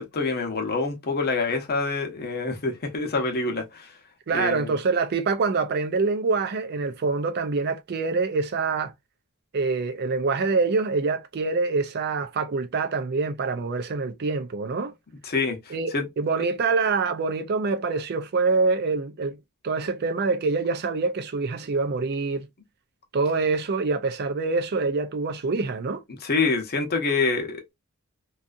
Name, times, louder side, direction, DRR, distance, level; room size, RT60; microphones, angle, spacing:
voice 1, 0.0-3.9 4.3-4.7 15.2-16.1 26.2-27.6, left 3 dB, 45° left, 0.7 m, -26 dB
voice 2, 4.3-8.9 9.5-14.9 15.7-19.4 19.6-22.5 23.1-26.0, right 4 dB, 45° right, 0.4 m, -25 dB
2.6 x 2.4 x 2.4 m
head